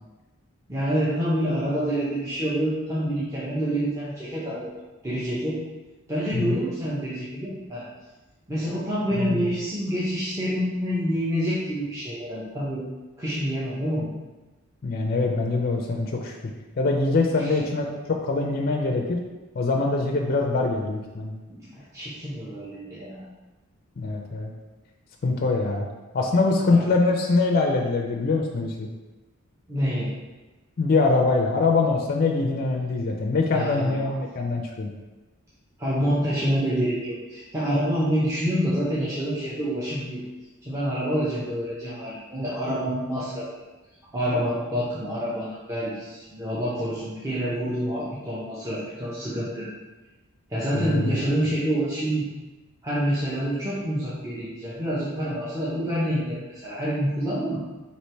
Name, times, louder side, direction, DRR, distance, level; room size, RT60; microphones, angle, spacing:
voice 1, 0.7-4.7 5.0-5.6 6.1-7.9 8.5-12.9 13.2-14.1 17.3-17.6 21.5-23.3 26.7-26.9 29.7-30.1 33.5-34.1 35.8-40.2 40.6-43.5 44.1-49.7 50.5-52.3 52.8-57.6, equal, 15° right, -9 dB, 0.5 m, -27 dB
voice 2, 14.8-16.3 16.8-19.2 19.6-21.4 24.0-24.5 25.2-25.9 26.1-28.9 30.8-34.9 50.7-51.2, left 3 dB, 40° left, 1 dB, 0.4 m, -23 dB
3.1 x 2.9 x 4.3 m, 1.2 s
head